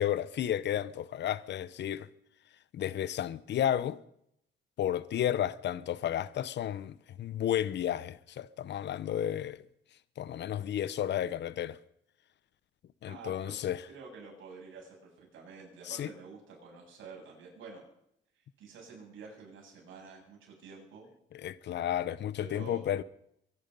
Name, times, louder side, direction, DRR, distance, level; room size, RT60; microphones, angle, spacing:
voice 1, 0.0-2.1 2.7-4.0 4.8-9.6 10.2-11.8 13.0-13.9 15.8-16.1 21.3-23.0, left 10 dB, 60° left, 0.8 m, -32 dB
voice 2, 13.1-13.6 13.9-17.8 18.6-21.1 22.4-22.8, right 4 dB, 75° right, 7.8 m, -49 dB
24.0 x 11.0 x 5.4 m
cardioid pair, 90°, 20 cm